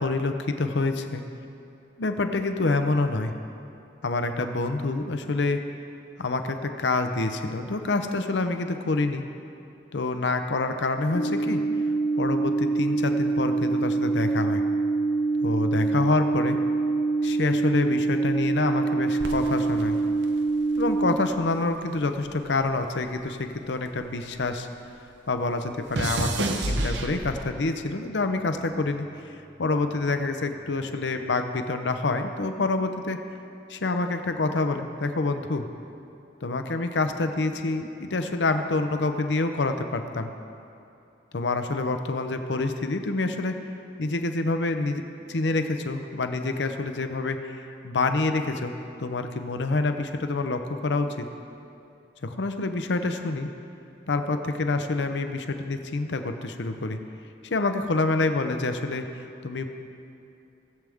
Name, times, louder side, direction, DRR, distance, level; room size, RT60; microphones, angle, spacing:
voice 1, 0.0-1.2 2.0-3.3 4.0-5.6 6.2-9.2 9.9-11.6 12.2-14.6 15.4-16.6 17.2-20.0 20.8-24.7 25.3-29.0 29.3-33.2 33.7-35.6 36.4-40.3 41.3-43.6 44.0-45.0 45.3-48.7 49.0-51.3 52.2-53.5 54.1-57.0 57.4-59.1 59.4-59.7, left 3 dB, 85° left, 7 dB, 0.7 m, -27 dB
sound 1, 11.1-21.1, right 3 dB, 35° left, 0.6 m, -25 dB
sound 2, 19.2-21.7 22.0-24.6 24.9-27.7 28.4-28.8, right 2 dB, 85° right, 0.8 m, -32 dB
18.5 x 7.6 x 3.6 m, 2.7 s
head